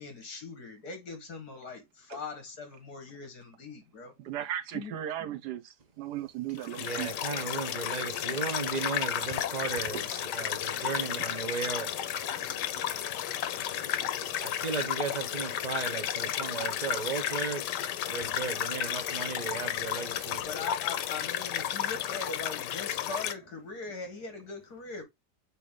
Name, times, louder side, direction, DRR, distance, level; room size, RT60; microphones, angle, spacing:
voice 1, 0.0-4.1 4.7-4.9 20.5-25.0, left 4 dB, 65° left, 2.4 m, -41 dB
voice 2, 4.2-7.1 9.9-10.0 10.8-10.9 11.4-11.5 12.2-13.1 13.5-14.5, right 11 dB, 75° right, 1.3 m, -38 dB
sound 1, 6.6-23.3, left 10 dB, 90° left, 1.3 m, -33 dB
voice 3, 6.8-11.9 14.4-17.7 18.1-20.4, right 5 dB, 30° right, 0.9 m, -35 dB
8.4 x 3.1 x 3.7 m
omnidirectional pair, 1.8 m